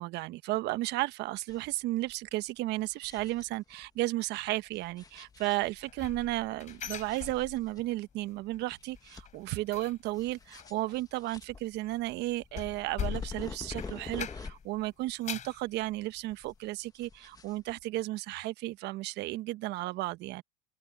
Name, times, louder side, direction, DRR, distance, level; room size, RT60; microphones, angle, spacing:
voice 1, 0.0-20.4, right 18 dB, 55° right, 1.2 m, -34 dB
sound 1, 1.5-1.8 2.1-2.2 2.7-3.9 4.7-6.0 6.7-7.8 8.2-8.3 8.7-9.7 10.1-14.8 15.1-16.0 16.3-18.0, left 4 dB, 20° left, 1.7 m, -47 dB
sound 2, 5.6-8.0 8.3-8.6 8.9-14.7 15.0-15.6 16.1-16.2 16.6-16.7, left 9 dB, 35° left, 4.2 m, -42 dB
hypercardioid pair, 95°, 20 cm